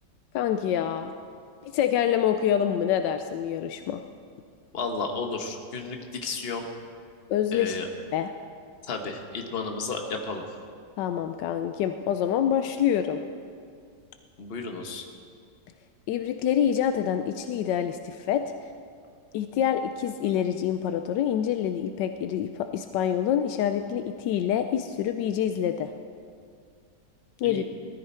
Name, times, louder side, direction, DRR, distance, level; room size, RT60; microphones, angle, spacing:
voice 1, 0.3-1.1 1.6-4.0 7.3-7.8 8.1-8.3 11.0-13.2 16.1-18.7 19.3-25.9 27.4-27.6, left 9 dB, 90° left, 8 dB, 1.3 m, -26 dB
voice 2, 4.7-6.6 7.5-7.9 8.8-10.4 14.4-15.0 27.4-27.6, left 4 dB, 40° left, 3 dB, 1.3 m, -32 dB
18.5 x 14.0 x 4.4 m, 2.2 s
omnidirectional pair, 1.8 m